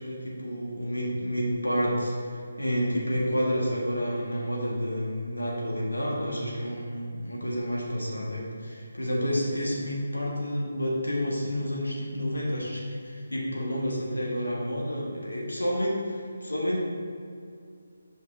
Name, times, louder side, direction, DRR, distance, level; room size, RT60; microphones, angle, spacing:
voice 1, 0.0-16.8, equal, 75° left, -4 dB, 1.5 m, -29 dB
6.9 x 5.3 x 3.8 m, 2.4 s
figure-of-eight pair, 150°, 0 cm